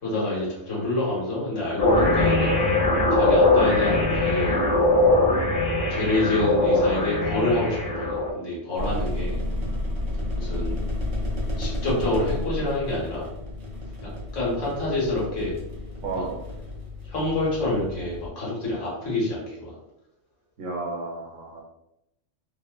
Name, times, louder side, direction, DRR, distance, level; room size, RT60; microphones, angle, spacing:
voice 1, 0.0-2.5 3.1-4.6 5.9-9.4 10.3-10.8 11.6-13.3 14.0-15.6 16.1-16.2 17.0-19.7, left 2 dB, 80° left, -6 dB, 1.5 m, -27 dB
sound 1, 1.8-8.3, left 2 dB, 55° left, 0.8 m, -21 dB
sound 2, 8.8-18.3, left 1 dB, 45° right, 0.4 m, -31 dB
voice 2, 16.0-16.4 20.6-21.6, right 3 dB, 85° right, 0 dB, 1.0 m, -32 dB
3.1 x 2.1 x 2.2 m, 0.86 s
omnidirectional pair, 1.3 m